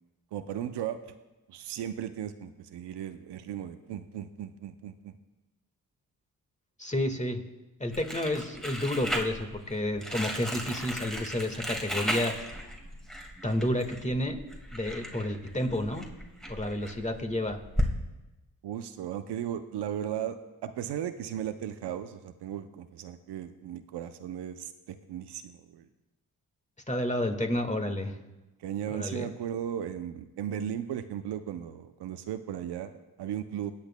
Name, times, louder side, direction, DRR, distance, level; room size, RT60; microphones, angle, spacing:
voice 1, 0.3-1.1 1.5-5.1 18.6-25.9 28.6-33.7, right 10 dB, 80° right, 10 dB, 0.6 m, -36 dB
voice 2, 6.8-7.4 7.8-12.3 13.4-14.4 14.7-16.1 16.5-17.6 26.9-28.2 28.9-29.3, left 1 dB, 20° left, 5 dB, 1.6 m, -30 dB
Crumpling crinkling, 7.9-17.9, equal, ahead, 1.9 m, -35 dB
18.5 x 8.6 x 2.2 m, 1.1 s
supercardioid pair, 40°, 40 cm